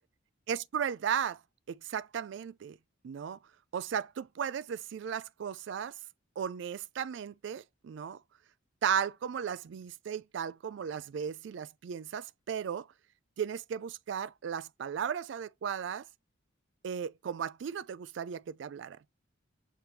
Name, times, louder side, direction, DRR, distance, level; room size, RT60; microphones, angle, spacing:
voice 1, 0.5-1.4 1.7-2.8 3.0-3.4 3.7-6.0 6.4-8.2 8.8-12.9 13.4-16.1 16.8-19.0, right 8 dB, 60° right, 0.3 m, -35 dB
5.2 x 2.8 x 3.0 m
head